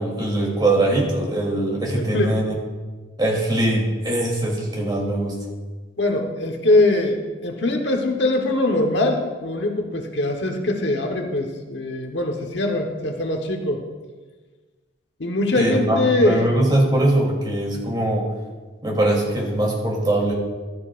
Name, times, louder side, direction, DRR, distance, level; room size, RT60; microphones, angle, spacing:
voice 1, 0.0-2.6 3.2-5.4 15.6-18.3 18.8-20.3, right 1 dB, 25° right, -2 dB, 3.1 m, -21 dB
voice 2, 2.0-2.3 6.0-13.8 15.2-16.5, left 2 dB, 65° left, 3 dB, 1.2 m, -22 dB
14.5 x 12.5 x 2.5 m, 1.3 s
head